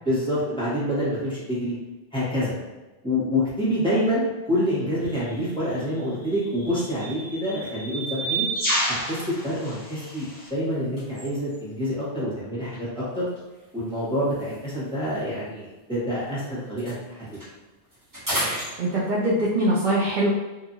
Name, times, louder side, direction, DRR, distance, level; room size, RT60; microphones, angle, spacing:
voice 1, 0.0-1.7 2.1-2.6 3.0-8.4 9.0-13.3 13.7-17.4, equal, 5° left, -10 dB, 1.0 m, -27 dB
sound 1, 5.1-5.3 6.3-10.5, right 2 dB, 35° left, 1.1 m, -30 dB
sound 2, 7.6-7.7 7.9-11.9 12.7-16.3 16.6-19.4, equal, 20° right, 1.0 m, -37 dB
voice 2, 18.8-20.3, right 1 dB, 55° right, -6 dB, 0.6 m, -22 dB
2.7 x 2.5 x 2.6 m, 1.1 s
omnidirectional pair, 1.2 m